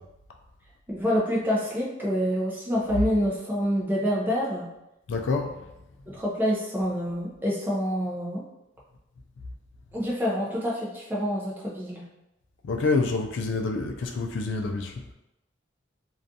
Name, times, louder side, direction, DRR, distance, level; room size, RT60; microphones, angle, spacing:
voice 1, 0.9-4.7 6.1-8.5 9.9-12.1, equal, 10° right, -5 dB, 0.4 m, -27 dB
voice 2, 5.1-5.6 12.6-14.9, left 3 dB, 75° left, 3 dB, 0.3 m, -27 dB
2.4 x 2.3 x 2.6 m, 0.90 s
head